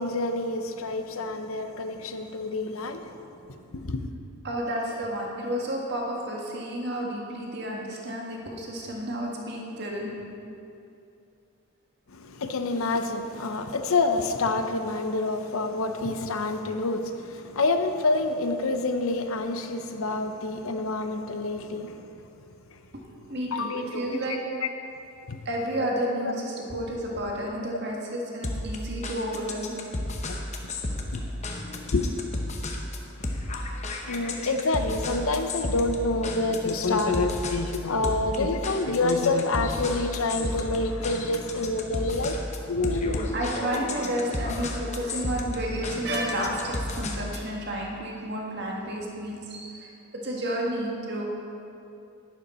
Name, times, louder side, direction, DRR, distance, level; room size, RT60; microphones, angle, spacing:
voice 1, 0.0-3.0 3.7-4.1 12.1-22.1 23.5-24.7 25.3-25.4 26.2-26.3 30.3-30.4 31.1-31.2 31.9-32.1 34.1-42.4 42.7-43.4, left 3 dB, 75° left, 7 dB, 0.8 m, -27 dB
voice 2, 4.4-10.1 22.9-23.0 23.3-24.4 25.4-29.7 43.3-51.3, right 1 dB, 50° right, -1 dB, 1.7 m, -31 dB
sound 1, 28.4-47.5, left 1 dB, 30° left, 0.9 m, -33 dB
11.5 x 10.5 x 4.3 m, 2.6 s
head